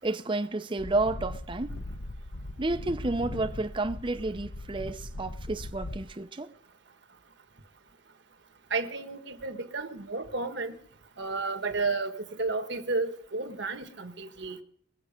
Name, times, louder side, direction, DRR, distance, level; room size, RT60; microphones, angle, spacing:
voice 1, 0.0-1.8 2.6-6.5, right 2 dB, 25° right, 0.6 m, -31 dB
sound 1, 0.8-6.1, left 1 dB, 65° left, 1.0 m, -39 dB
voice 2, 8.7-10.8 11.2-14.6, right 3 dB, 65° right, 1.4 m, -32 dB
22.0 x 7.7 x 5.2 m
head